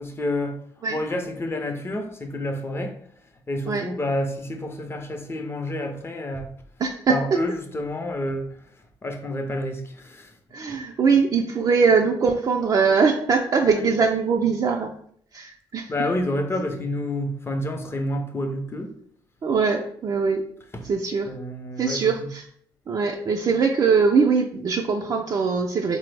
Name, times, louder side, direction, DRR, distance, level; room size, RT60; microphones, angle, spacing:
voice 1, 0.0-3.0 3.5-6.5 7.1-10.4 10.7-10.8 13.6-13.9 15.9-19.0 20.7-20.9 21.3-22.3, left 1 dB, 25° left, 5 dB, 0.5 m, -29 dB
voice 2, 6.8-7.2 10.5-14.9 15.3-15.9 19.4-20.4 20.8-21.3 21.8-22.4 22.9-26.0, right 5 dB, 45° right, 1 dB, 0.3 m, -21 dB
3.4 x 2.0 x 3.2 m, 0.64 s
cardioid pair, 75°, 9 cm